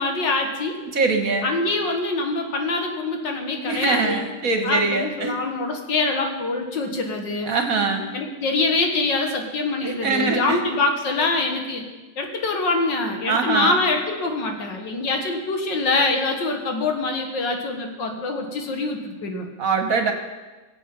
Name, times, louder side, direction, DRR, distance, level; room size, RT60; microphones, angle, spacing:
voice 1, 0.0-0.7 1.4-4.2 4.6-7.5 8.1-11.8 12.2-19.5, left 3 dB, 80° left, 3 dB, 2.4 m, -24 dB
voice 2, 0.8-1.5 3.6-5.4 7.5-8.1 9.8-10.6 13.3-13.8 19.6-20.1, right 4 dB, 50° right, 5 dB, 1.8 m, -23 dB
22.5 x 7.6 x 5.4 m, 1.2 s
omnidirectional pair, 1.9 m